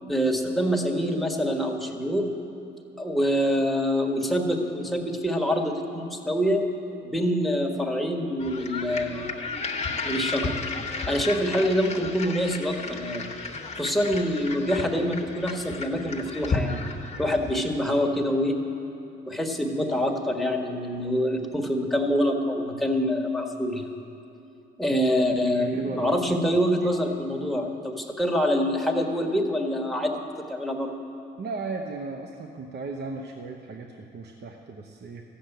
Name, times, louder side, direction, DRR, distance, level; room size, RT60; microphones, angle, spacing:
voice 1, 0.0-2.3 3.0-6.6 7.0-9.3 10.0-10.6 11.1-13.2 13.8-16.8 17.2-18.6 19.3-23.9 24.8-30.9, equal, ahead, 1 dB, 1.5 m, -25 dB
sound 1, 8.4-17.7, left 4 dB, 35° left, 1.2 m, -33 dB
voice 2, 25.4-26.1 31.4-35.2, right 3 dB, 55° right, 2 dB, 0.9 m, -36 dB
13.5 x 7.1 x 9.1 m, 2.8 s
cardioid pair, 90°, 20 cm